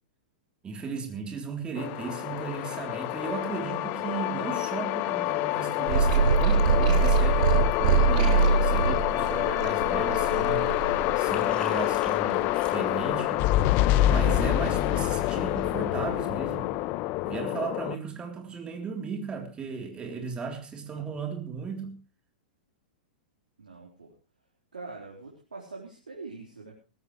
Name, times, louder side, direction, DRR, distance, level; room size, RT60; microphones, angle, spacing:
voice 1, 0.6-13.5 14.1-16.8 17.2-22.0, right 5 dB, 20° right, 3.5 m, -36 dB
sound 1, 1.8-18.0, left 15 dB, 45° left, 1.0 m, -27 dB
sound 2, 5.9-11.2, right 5 dB, 60° right, 2.7 m, -23 dB
Liquid, 10.2-15.8, left 3 dB, 20° left, 6.6 m, -46 dB
voice 2, 23.6-24.1 24.7-26.7, right 3 dB, 90° right, 4.0 m, -43 dB
19.0 x 16.0 x 3.2 m
hypercardioid pair, 110°, 5 cm